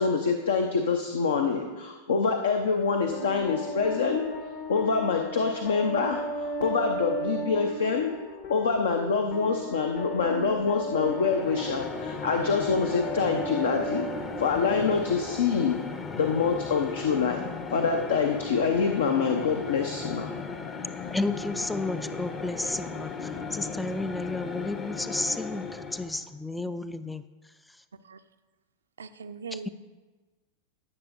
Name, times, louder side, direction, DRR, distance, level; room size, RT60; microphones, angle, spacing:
voice 1, 0.0-4.3 4.7-8.1 8.5-14.1 14.4-15.8 16.1-17.4 17.7-20.3, left 5 dB, 65° left, 5 dB, 0.6 m, -26 dB
sound 1, 2.9-15.9, equal, 45° left, 1.2 m, -36 dB
sound 2, 10.9-26.3, left 4 dB, 25° left, 0.7 m, -36 dB
voice 2, 21.1-27.2 29.5-29.7, left 2 dB, 5° left, 13 dB, 0.3 m, -32 dB
voice 3, 29.0-29.7, right 5 dB, 70° right, 10 dB, 0.4 m, -39 dB
15.0 x 7.1 x 2.6 m, 1.3 s
figure-of-eight pair, 90°, 0 cm